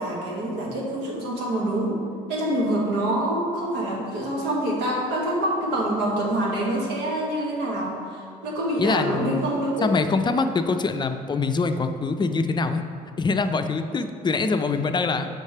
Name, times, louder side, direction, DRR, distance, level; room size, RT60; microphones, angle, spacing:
voice 1, 0.0-2.0 2.3-9.9, right 1 dB, 85° right, -2 dB, 1.3 m, -26 dB
voice 2, 8.8-9.4 9.8-12.8 13.2-15.3, left 4 dB, 25° left, 8 dB, 0.4 m, -24 dB
6.5 x 3.2 x 5.5 m, 2.2 s
supercardioid pair, 75°, 17 cm